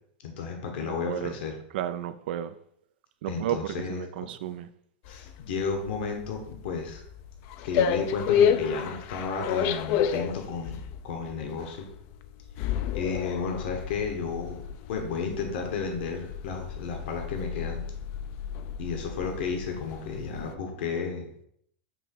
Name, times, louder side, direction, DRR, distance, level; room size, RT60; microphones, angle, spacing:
voice 1, 0.2-1.5 3.3-4.3 5.1-7.0 7.6-10.8 11.0-11.9 12.9-14.6 14.9-17.8 18.8-21.3, left 5 dB, 70° left, 1.4 m, -32 dB
voice 2, 0.8-1.3 1.7-2.6 3.2-4.7, right 11 dB, 70° right, 0.4 m, -33 dB
sound 1, 5.1-20.5, left 8 dB, 50° left, 0.4 m, -31 dB
7.6 x 3.0 x 4.5 m
hypercardioid pair, 125°, 6 cm